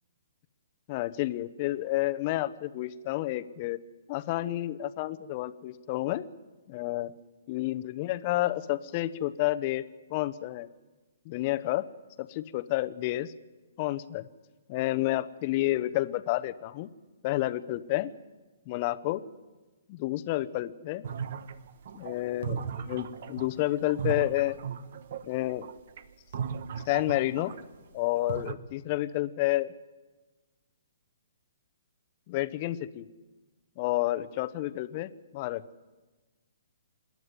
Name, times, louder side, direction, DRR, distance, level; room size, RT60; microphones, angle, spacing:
voice 1, 0.9-3.8 4.1-6.3 6.7-7.1 7.5-9.8 10.1-10.7 11.2-11.9 12.2-13.3 13.8-14.3 14.7-16.9 17.2-18.1 18.7-19.2 19.9-21.0 21.9-24.6 25.3-25.7 26.9-27.5 27.9-29.7 32.3-33.1 33.8-35.6, left 16 dB, 30° left, 14 dB, 0.8 m, -30 dB
sound 1, 21.0-27.8 28.1-28.5, right 7 dB, 50° right, 1.1 m, -37 dB
26.5 x 10.5 x 9.7 m, 1.2 s
hypercardioid pair, 165°, 0 cm